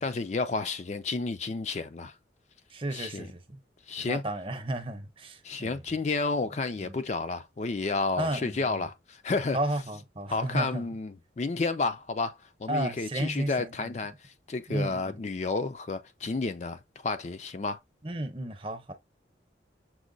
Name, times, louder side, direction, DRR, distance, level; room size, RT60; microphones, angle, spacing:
voice 1, 0.0-2.1 2.9-3.3 3.9-4.2 5.4-9.6 10.3-14.1 14.5-17.8, left 3 dB, 35° left, 0.4 m, -31 dB
voice 2, 2.7-3.6 4.0-5.8 6.8-7.0 8.2-8.9 9.5-10.9 12.7-14.0 14.7-15.2 18.0-18.9, right 1 dB, 30° right, 0.7 m, -33 dB
6.1 x 2.2 x 3.8 m
head